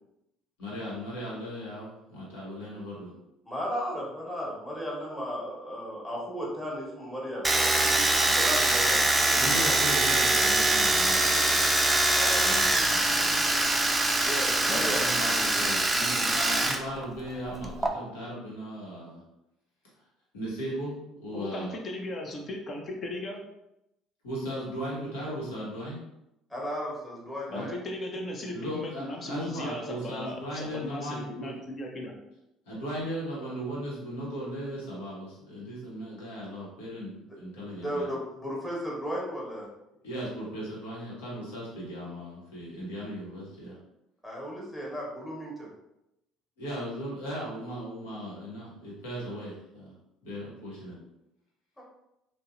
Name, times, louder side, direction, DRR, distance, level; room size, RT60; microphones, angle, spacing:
voice 1, 0.6-3.1 9.3-11.6 12.3-13.4 14.6-19.2 20.3-21.8 24.2-26.0 27.5-27.7 28.5-31.6 32.7-38.1 40.0-43.8 46.6-49.9 50.2-51.0, equal, 85° left, -6 dB, 0.9 m, -37 dB
voice 2, 3.4-9.6 12.2-12.5 14.2-15.0 26.5-27.7 37.8-39.7 44.2-45.7 51.8-51.9, equal, 15° left, -5 dB, 1.2 m, -35 dB
Domestic sounds home sounds, 7.4-16.8 17.0-17.9, right 2 dB, 20° right, 0.3 m, -24 dB
voice 3, 21.3-23.4 27.5-32.1, left 1 dB, 45° left, 1 dB, 0.6 m, -37 dB
2.6 x 2.1 x 2.4 m, 0.87 s
hypercardioid pair, 70°, 0 cm